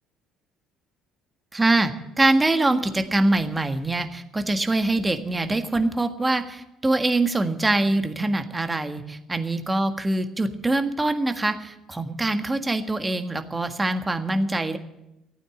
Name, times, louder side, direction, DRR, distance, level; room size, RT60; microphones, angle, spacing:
voice 1, 1.5-1.9 2.2-14.8, right 2 dB, 20° right, 7 dB, 1.6 m, -24 dB
15.0 x 9.2 x 9.3 m, 0.91 s
hypercardioid pair, 55°, 0 cm